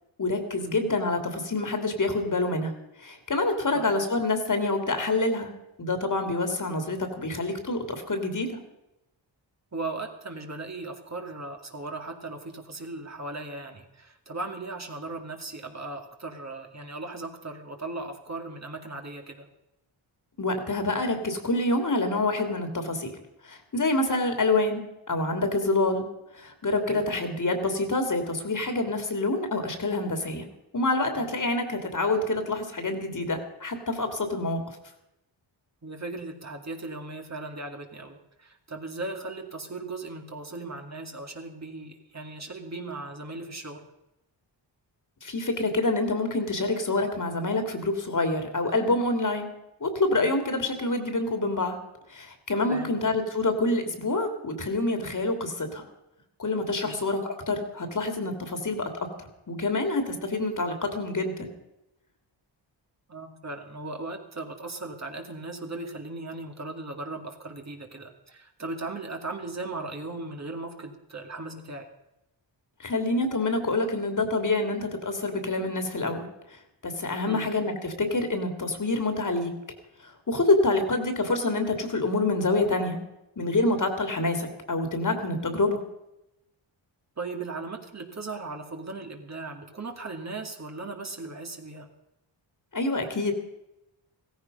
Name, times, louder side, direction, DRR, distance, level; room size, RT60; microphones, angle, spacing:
voice 1, 0.2-2.7 3.0-5.5 5.8-8.6 20.4-23.1 23.4-26.0 26.3-30.4 30.7-34.6 45.2-49.5 49.8-51.8 52.1-55.9 56.4-57.2 57.5-58.9 59.2-61.5 72.8-76.3 76.8-79.5 80.0-83.0 83.4-85.8 92.7-93.3, left 2 dB, 40° left, 6 dB, 2.7 m, -27 dB
voice 2, 9.7-19.5 26.9-27.0 31.2-31.3 35.8-43.9 52.7-53.0 56.8-57.0 63.1-71.9 77.2-77.5 87.2-91.9, right 3 dB, 35° right, 3 dB, 2.3 m, -37 dB
16.0 x 15.0 x 5.4 m, 0.88 s
cardioid pair, 70°, 46 cm